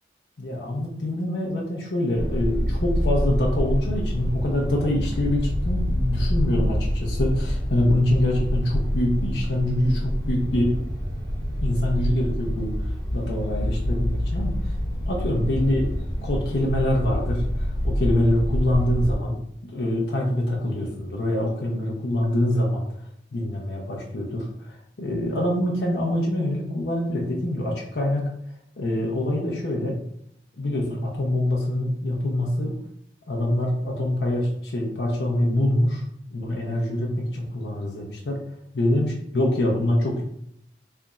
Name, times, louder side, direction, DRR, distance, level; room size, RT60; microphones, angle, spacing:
voice 1, 0.4-10.8 11.6-12.7 13.1-14.7 15.1-15.9 16.2-22.8 23.3-28.2 28.8-30.0 30.6-32.8 33.3-36.0 36.3-38.4 38.7-40.2, left 1 dB, 75° left, -2 dB, 0.7 m, -25 dB
sound 1, 2.1-19.1, equal, 25° left, 1.0 m, -26 dB
3.4 x 2.4 x 3.9 m, 0.72 s
head